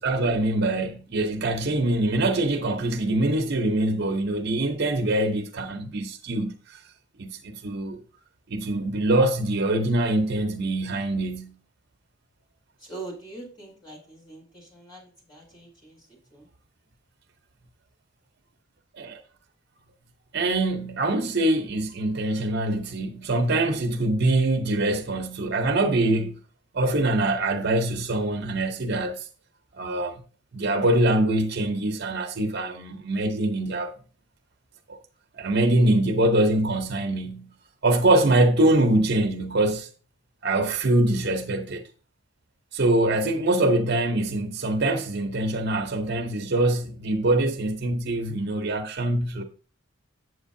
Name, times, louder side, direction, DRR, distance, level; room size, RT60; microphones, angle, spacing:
voice 1, 0.0-6.8 7.2-8.0 8.5-11.6 18.9-19.2 20.3-26.4 26.7-29.3 29.7-30.2 30.5-33.9 34.9-35.0 35.4-37.5 37.8-39.9 40.4-41.8 42.7-49.4, right 1 dB, 50° right, 0.7 m, -24 dB
voice 2, 12.8-16.5, right 3 dB, 20° left, 4.4 m, -43 dB
8.2 x 7.8 x 2.6 m
head